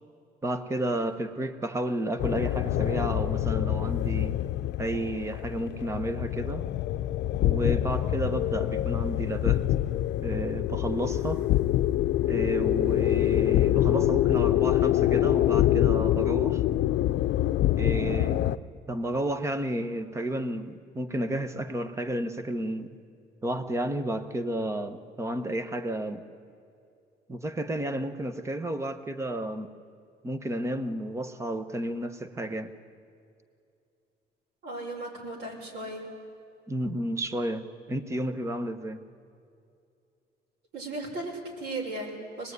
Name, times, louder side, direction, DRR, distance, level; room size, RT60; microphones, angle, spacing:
voice 1, 0.4-4.4 4.8-6.6 7.4-9.6 10.2-11.4 12.3-16.6 17.8-18.6 18.9-23.0 23.4-26.2 27.3-29.7 30.2-32.7 36.7-39.0, right 1 dB, 15° right, 11 dB, 1.1 m, -31 dB
sound 1, 2.2-18.6, left 13 dB, 85° left, 0.6 m, -25 dB
voice 2, 34.6-36.1 40.7-42.5, right 2 dB, 70° right, 0 dB, 6.2 m, -36 dB
25.5 x 19.5 x 9.5 m, 2.5 s
cardioid pair, 170°, 18 cm